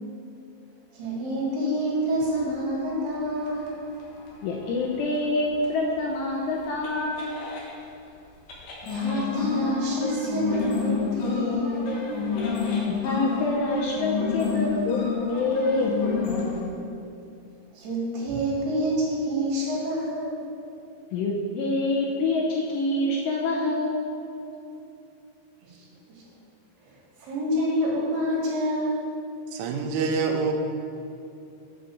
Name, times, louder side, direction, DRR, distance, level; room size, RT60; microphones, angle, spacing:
voice 1, 0.9-3.9 8.8-12.0 17.7-20.4 25.6-25.8 26.1-26.2 26.9-27.0 27.2-29.1, equal, 60° right, -5 dB, 3.4 m, -27 dB
sound 1, 3.2-7.7 8.5-16.7, left 5 dB, 65° left, 2.9 m, -29 dB
voice 2, 4.4-7.4 12.9-15.0 15.3-16.2 21.1-24.1, left 2 dB, 85° left, -1 dB, 2.5 m, -26 dB
voice 3, 29.5-30.5, right 5 dB, 85° right, 3 dB, 3.3 m, -26 dB
7.5 x 5.6 x 6.8 m, 2.7 s
omnidirectional pair, 5.6 m